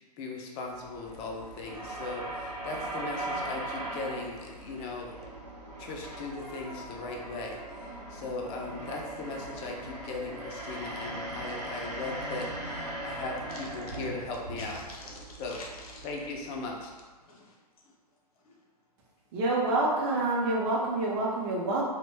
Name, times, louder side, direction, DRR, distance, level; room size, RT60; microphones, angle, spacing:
voice 1, 0.2-5.1 5.8-7.6 8.1-14.8 15.4-15.6 16.0-16.9, left 3 dB, 25° left, 0 dB, 0.4 m, -38 dB
sound 1, 0.7-17.0, right 1 dB, 80° right, 0.7 m, -40 dB
voice 2, 13.5-14.0 14.6-16.1 17.2-17.9 18.4-18.6, left 2 dB, 60° left, -2 dB, 0.8 m, -48 dB
voice 3, 19.3-21.9, right 2 dB, 40° right, -4 dB, 0.6 m, -27 dB
2.5 x 2.1 x 3.2 m, 1.3 s
hypercardioid pair, 120°, 21 cm